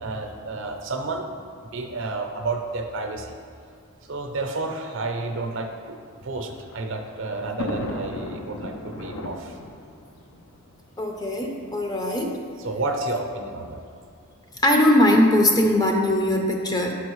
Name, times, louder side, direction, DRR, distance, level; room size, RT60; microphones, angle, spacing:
voice 1, 0.0-1.3 1.6-3.4 4.0-6.0 6.2-9.6 12.6-13.8, right 3 dB, 60° right, 4 dB, 0.5 m, -30 dB
Thunder, 6.1-11.5 12.3-12.4 12.6-12.7 13.8-14.1, left 1 dB, 85° left, 0.6 m, -36 dB
voice 2, 11.0-12.4 14.6-16.9, left 1 dB, 20° left, 1 dB, 0.5 m, -20 dB
6.1 x 5.5 x 3.1 m, 2.4 s
head